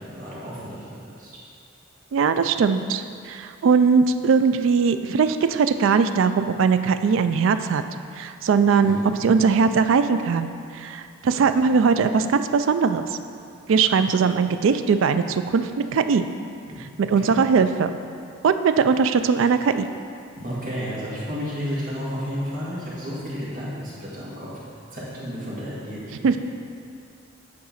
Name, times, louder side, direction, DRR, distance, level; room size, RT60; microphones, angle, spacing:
voice 1, 0.0-1.4 8.8-9.1 11.4-11.5 16.6-16.9 17.1-17.3 20.3-24.5 24.9-26.4, equal, 40° right, -8 dB, 1.7 m, -32 dB
voice 2, 2.1-7.8 8.2-13.1 13.7-16.3 17.0-17.9 18.4-19.9 26.2-26.4, right 5 dB, 65° right, 10 dB, 0.3 m, -20 dB
8.6 x 3.7 x 5.6 m, 2.4 s
head